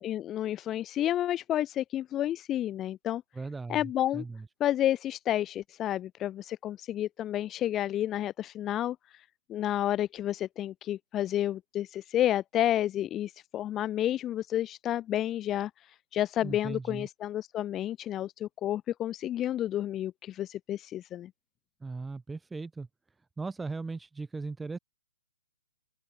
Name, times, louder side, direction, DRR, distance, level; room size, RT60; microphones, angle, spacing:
voice 1, 0.0-3.2 3.7-4.2 4.6-9.2 9.5-15.7 16.1-21.3, left 12 dB, 20° left, 0.7 m, -30 dB
voice 2, 3.3-4.5 16.4-17.1 21.8-22.9 23.4-24.8, right 3 dB, 5° right, 3.0 m, -38 dB
open air
hypercardioid pair, 130°, 0 cm